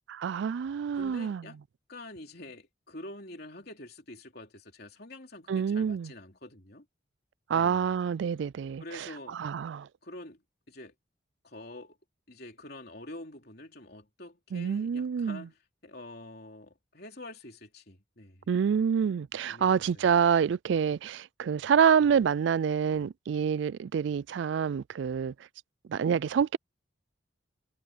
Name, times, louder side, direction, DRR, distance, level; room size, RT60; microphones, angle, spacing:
voice 1, 0.1-1.4 5.5-6.1 7.5-9.1 9.4-9.9 14.5-15.4 18.5-25.3 25.9-26.6, right 7 dB, 65° right, 0.3 m, -27 dB
voice 2, 0.9-1.6 1.9-6.9 7.5-7.9 8.8-9.4 10.0-10.9 11.4-12.0 12.3-18.5 19.5-20.0, left 1 dB, 50° left, 3.6 m, -46 dB
head